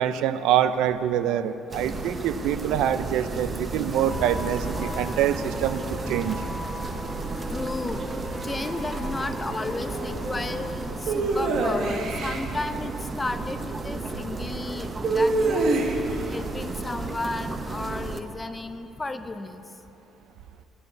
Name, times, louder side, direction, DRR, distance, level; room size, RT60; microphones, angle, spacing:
voice 1, 0.0-6.4, right 10 dB, 80° right, 12 dB, 0.5 m, -25 dB
sound 1, 1.7-18.2, right 3 dB, 30° right, 0.8 m, -33 dB
sound 2, 4.0-10.7 11.0-11.1, left 1 dB, 10° right, 2.5 m, -37 dB
voice 2, 7.5-15.7 16.3-19.6, left 2 dB, 20° left, 10 dB, 0.6 m, -33 dB
sound 3, 11.1-12.4 15.0-16.2, right 2 dB, 60° right, 1.4 m, -24 dB
13.5 x 7.0 x 8.3 m, 2.9 s
cardioid pair, 105°, 0 cm